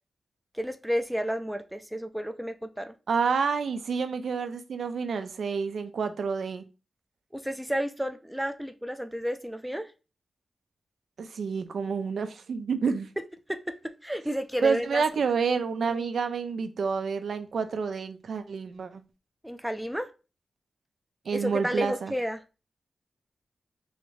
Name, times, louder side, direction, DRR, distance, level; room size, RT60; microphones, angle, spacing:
voice 1, 0.5-2.9 7.3-9.9 13.5-13.7 14.0-15.0 19.4-20.1 21.3-22.4, equal, 5° right, 0.3 m, -31 dB
voice 2, 3.1-6.6 11.2-13.1 14.6-19.0 21.3-22.1, right 5 dB, 85° right, 0.4 m, -29 dB
3.1 x 2.5 x 3.1 m
cardioid pair, 70°, 0 cm